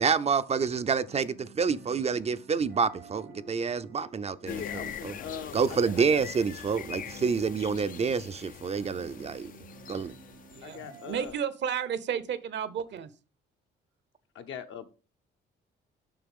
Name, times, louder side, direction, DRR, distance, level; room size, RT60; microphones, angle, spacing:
voice 1, 0.0-4.6 5.0-5.1 5.5-9.5 9.9-10.1, right 5 dB, 30° right, 0.5 m, -28 dB
sound 1, 1.0-11.1, right 5 dB, 90° right, 3.0 m, -53 dB
voice 2, 4.4-6.2 10.6-11.4 14.3-14.8, left 7 dB, 70° left, 1.0 m, -41 dB
sound 2, 4.5-11.3, left 9 dB, 45° left, 0.4 m, -43 dB
voice 3, 10.5-13.1, right 8 dB, 65° right, 0.8 m, -32 dB
6.8 x 5.7 x 3.6 m
cardioid pair, 90°, 20 cm